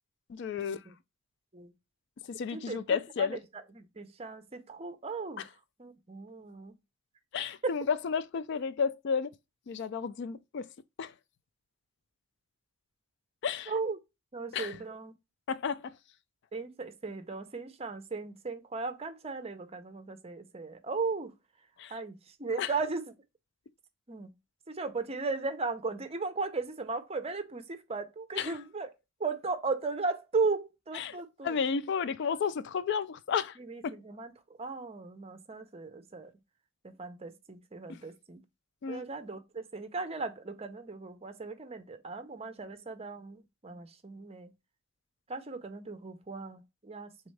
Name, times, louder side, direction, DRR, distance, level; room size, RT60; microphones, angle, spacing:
voice 1, 0.3-0.8 2.3-3.4 5.4-5.5 7.3-9.3 9.7-10.7 11.0-11.1 13.4-13.7 14.5-14.8 15.5-15.9 21.8-22.0 22.6-22.7 28.4-28.6 30.9-33.6 33.8-34.0 37.9-38.0 38.8-39.0, left 6 dB, 60° left, 0.3 m, -32 dB
voice 2, 2.5-3.4 3.8-5.4 5.8-6.7 7.6-7.8 13.7-14.0 14.3-15.1 16.5-21.3 21.9-22.1 22.4-23.1 24.1-24.3 24.7-28.9 29.2-31.6 33.6-34.3 34.6-36.3 36.8-38.4 38.9-44.5 45.3-47.1, right 4 dB, 30° right, 0.6 m, -36 dB
4.2 x 3.5 x 3.2 m
head